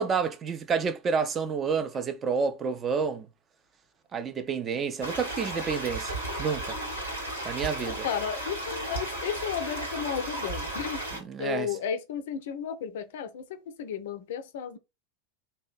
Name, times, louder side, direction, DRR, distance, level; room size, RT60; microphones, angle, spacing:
voice 1, 0.0-3.3 4.1-6.8 7.4-8.1 11.3-11.7, right 5 dB, 25° right, 0.4 m, -29 dB
sound 1, 5.0-11.2, right 1 dB, 80° right, 1.2 m, -34 dB
voice 2, 7.8-11.0 11.4-14.8, left 8 dB, 60° left, 0.4 m, -33 dB
2.8 x 2.1 x 2.4 m
figure-of-eight pair, 85°, 0 cm